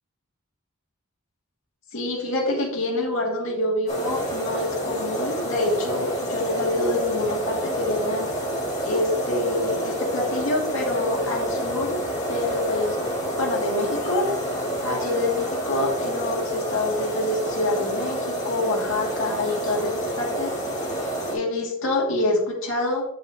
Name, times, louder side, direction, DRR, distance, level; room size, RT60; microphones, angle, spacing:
voice 1, 1.9-8.3 8.8-12.0 12.3-13.0 13.4-14.3 14.8-20.5 21.3-23.0, left 2 dB, 65° left, -2 dB, 2.4 m, -26 dB
sound 1, 3.9-21.3, right 1 dB, 30° left, 2.1 m, -28 dB
8.0 x 7.3 x 2.9 m, 0.76 s
head